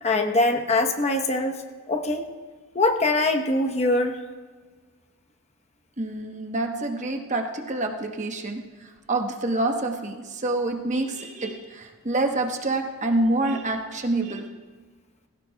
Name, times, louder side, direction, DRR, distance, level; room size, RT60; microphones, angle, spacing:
voice 1, 0.0-2.2 2.7-4.2, left 2 dB, 30° left, 3 dB, 1.0 m, -23 dB
voice 2, 6.0-14.5, right 2 dB, 30° right, 4 dB, 1.1 m, -27 dB
20.5 x 16.5 x 2.3 m, 1.5 s
head